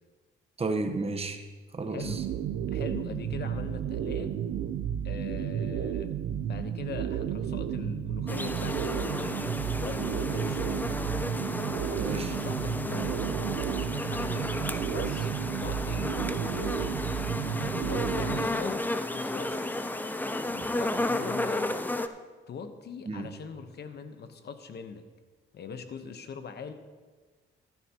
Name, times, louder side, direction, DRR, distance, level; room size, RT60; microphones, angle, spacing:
voice 1, 0.6-1.4 1.7-2.2 12.0-12.3 23.1-23.3, right 3 dB, 30° right, 6 dB, 1.1 m, -32 dB
voice 2, 1.9-2.3 2.7-4.4 5.0-6.1 6.5-11.1 11.8-13.5 13.9-14.5 14.8-16.8 17.4-20.1 20.5-21.8 22.5-25.0 25.5-26.7, left 6 dB, 55° left, 9 dB, 1.0 m, -41 dB
sound 1, 2.0-18.5, right 9 dB, 80° right, 0.6 m, -32 dB
sound 2, 8.3-22.1, left 1 dB, 10° left, 0.6 m, -33 dB
14.0 x 12.0 x 3.0 m, 1.4 s
cardioid pair, 90°, 20 cm